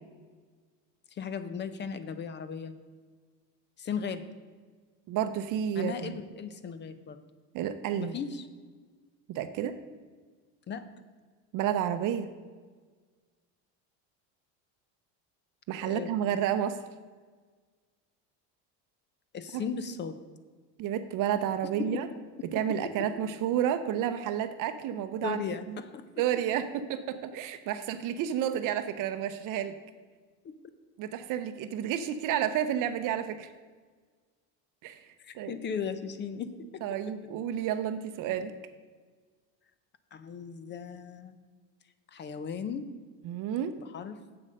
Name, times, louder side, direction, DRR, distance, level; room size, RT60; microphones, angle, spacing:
voice 1, 1.1-2.8 3.8-4.2 5.7-7.2 8.0-8.5 10.7-10.8 15.8-16.4 19.3-20.2 21.8-23.1 25.2-26.1 30.4-30.5 35.2-37.0 40.1-41.4 42.1-42.9 43.8-44.2, left 6 dB, 30° left, 12 dB, 0.5 m, -37 dB
voice 2, 5.1-6.2 7.5-8.1 9.3-9.8 11.5-12.3 15.7-16.8 20.8-22.1 22.5-25.4 25.7-25.8 26.2-29.7 31.0-33.5 34.8-35.0 35.3-35.5 36.8-38.6 43.2-43.7, right 10 dB, 55° right, 10 dB, 0.6 m, -30 dB
7.8 x 7.5 x 6.4 m, 1.5 s
cardioid pair, 145°, 38 cm